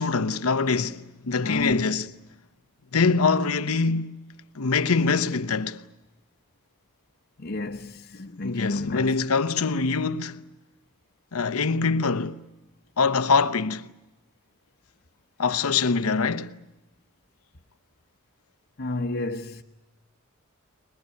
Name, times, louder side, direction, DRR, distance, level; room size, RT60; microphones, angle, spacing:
voice 1, 0.0-2.1 2.9-4.2 4.5-5.9 8.4-10.5 11.3-12.4 13.0-13.9 15.4-16.6, left 4 dB, 90° left, 0.9 m, -24 dB
voice 2, 1.4-1.8 7.4-9.2 18.8-19.6, left 2 dB, 50° left, 1.0 m, -31 dB
22.0 x 22.0 x 9.7 m
head